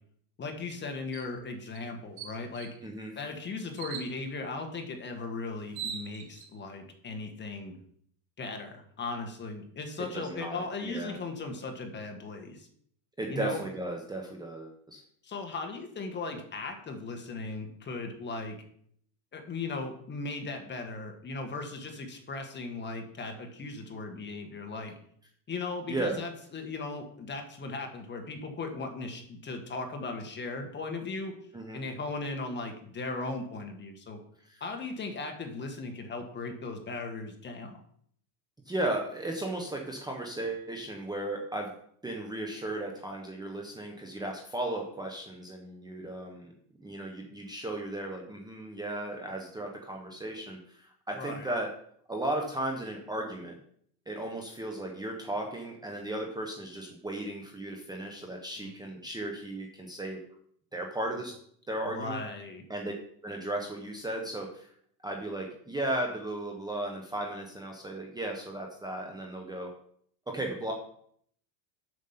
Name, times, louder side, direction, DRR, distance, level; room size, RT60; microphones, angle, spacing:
voice 1, 0.4-2.7 3.2-7.7 8.4-12.7 13.3-13.6 15.2-18.6 19.3-24.9 25.5-31.4 31.7-34.2 34.6-37.8 51.1-51.5 58.6-58.7 61.8-62.7, left 3 dB, 20° left, 4 dB, 1.5 m, -37 dB
sound 1, 1.1-1.3 1.7-1.8 2.2-2.8 3.8-4.1 5.2-5.3 5.6-6.5, right 8 dB, 75° right, 2.2 m, -40 dB
voice 2, 2.8-3.1 10.1-11.2 13.2-15.0 25.9-26.2 31.5-31.8 34.4-34.6 38.7-41.7 42.0-46.5 46.8-51.7 52.1-53.6 54.1-60.2 60.7-61.3 61.7-62.2 62.7-62.9 63.2-64.7 65.0-69.7 70.3-70.7, right 1 dB, 10° right, 1 dB, 1.1 m, -35 dB
7.7 x 7.2 x 5.8 m, 0.65 s
supercardioid pair, 140°, 50 cm